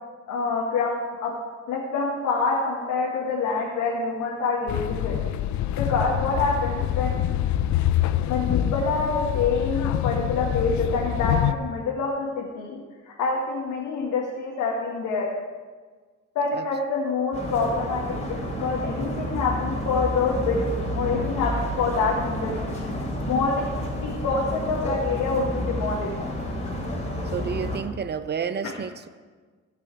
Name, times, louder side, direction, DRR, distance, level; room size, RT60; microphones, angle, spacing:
voice 1, 0.3-1.3 1.7-5.2 5.8-7.4 8.3-12.8 13.1-15.3 16.4-22.9 23.3-23.7 24.0-26.1, left 4 dB, 90° left, -4 dB, 1.8 m, -26 dB
sound 1, 4.7-11.5, left 11 dB, 70° left, 0.6 m, -25 dB
sound 2, 17.3-27.8, left 1 dB, 25° left, 2.9 m, -30 dB
voice 2, 27.3-29.1, right 7 dB, 35° right, 12 dB, 0.6 m, -30 dB
16.0 x 6.1 x 4.7 m, 1.4 s
cardioid pair, 90°, 30 cm